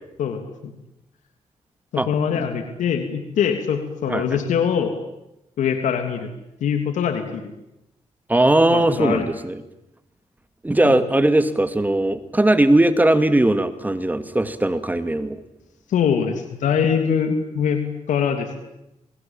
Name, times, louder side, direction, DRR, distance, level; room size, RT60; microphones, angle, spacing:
voice 1, 0.2-0.7 1.9-4.9 5.6-6.3 6.6-7.5 8.7-9.2 10.8-10.9 15.9-18.6, left 7 dB, 85° left, 7 dB, 3.1 m, -23 dB
voice 2, 8.3-9.6 10.6-15.4, right 1 dB, 15° right, 11 dB, 2.3 m, -19 dB
28.5 x 23.0 x 9.0 m, 0.92 s
cardioid pair, 85°, 12 cm